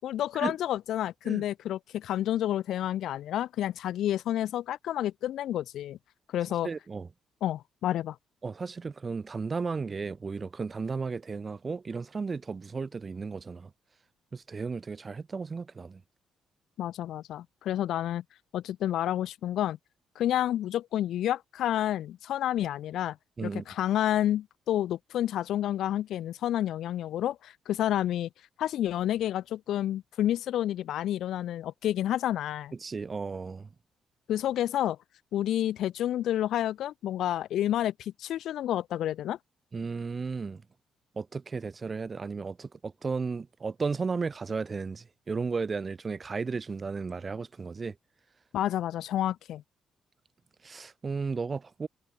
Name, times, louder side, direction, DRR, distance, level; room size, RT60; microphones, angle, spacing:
voice 1, 0.0-6.0 6.3-6.7 7.4-8.2 16.8-18.2 18.5-19.8 20.1-23.2 23.4-28.3 28.6-32.7 34.3-35.0 35.3-39.4 48.5-49.6, left 12 dB, 75° left, 1.1 m, -29 dB
voice 2, 6.6-7.1 8.4-13.7 14.3-16.0 23.4-23.6 32.8-33.7 39.7-40.6 41.2-47.9 50.6-51.9, right 4 dB, 35° right, 1.4 m, -34 dB
cardioid pair, 90°, 0 cm